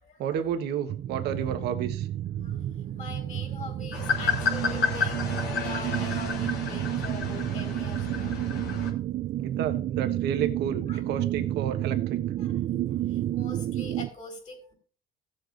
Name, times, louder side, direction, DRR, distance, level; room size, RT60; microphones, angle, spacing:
voice 1, 0.2-2.1 9.4-12.2, right 8 dB, 80° right, 6 dB, 1.3 m, -31 dB
sound 1, 0.9-14.1, right 13 dB, 50° right, 0.4 m, -30 dB
voice 2, 2.4-8.4 10.9-11.0 12.4-12.6 12.9-14.7, left 3 dB, 45° left, 2 dB, 4.3 m, -43 dB
sound 2, 3.9-8.9, left 5 dB, 85° left, 3.1 m, -31 dB
16.5 x 7.8 x 2.6 m, 0.41 s
cardioid pair, 110°, 17 cm